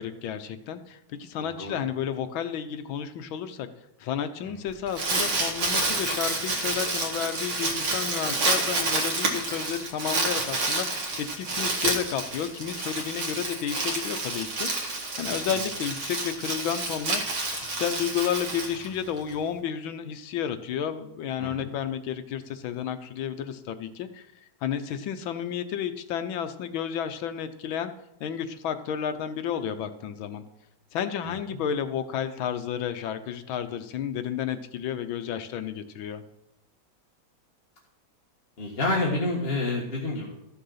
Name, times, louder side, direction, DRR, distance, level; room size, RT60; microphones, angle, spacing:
voice 1, 0.0-3.7 4.0-14.7 15.2-17.2 17.6-24.3 24.6-27.9 28.2-30.4 30.9-36.2, left 8 dB, 75° left, 10 dB, 1.6 m, -31 dB
voice 2, 1.4-1.8 4.4-4.5 15.3-15.6 21.4-21.7 31.2-31.6 38.6-40.3, left 2 dB, 30° left, -3 dB, 1.7 m, -29 dB
Crumpling crinkling, 4.7-19.3, right 3 dB, 85° right, 2.7 m, -29 dB
14.0 x 6.5 x 5.7 m, 0.88 s
omnidirectional pair, 2.2 m